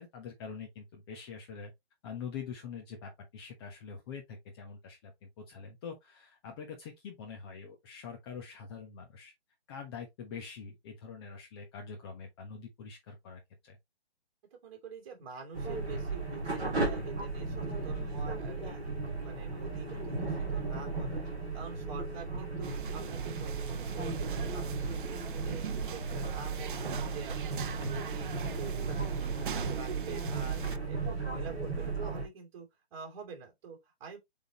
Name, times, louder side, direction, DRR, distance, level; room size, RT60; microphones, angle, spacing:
voice 1, 0.0-1.7 2.0-9.3 9.7-13.8, left 6 dB, 25° left, 1.2 m, -45 dB
voice 2, 14.5-18.9 19.2-21.2 21.5-34.2, right 5 dB, 30° right, 2.8 m, -47 dB
sound 1, 15.5-32.2, right 3 dB, 5° right, 0.4 m, -35 dB
sound 2, 22.6-30.8, right 8 dB, 50° right, 0.7 m, -42 dB
7.9 x 3.9 x 3.0 m
hypercardioid pair, 155°, 32 cm